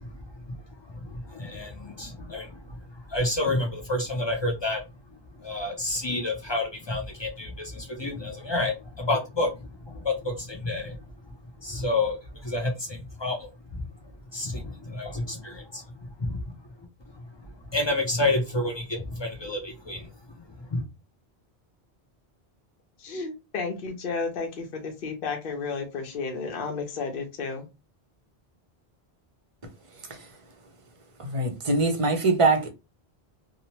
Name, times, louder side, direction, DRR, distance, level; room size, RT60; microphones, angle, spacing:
voice 1, 0.0-4.8 5.1-16.5 16.8-16.9 17.1-20.8, left 2 dB, 40° left, 0.4 m, -30 dB
voice 2, 23.0-27.7, left 4 dB, 60° left, 0.8 m, -32 dB
voice 3, 31.2-32.7, right 3 dB, 40° right, 0.5 m, -23 dB
2.8 x 2.0 x 2.8 m
omnidirectional pair, 1.1 m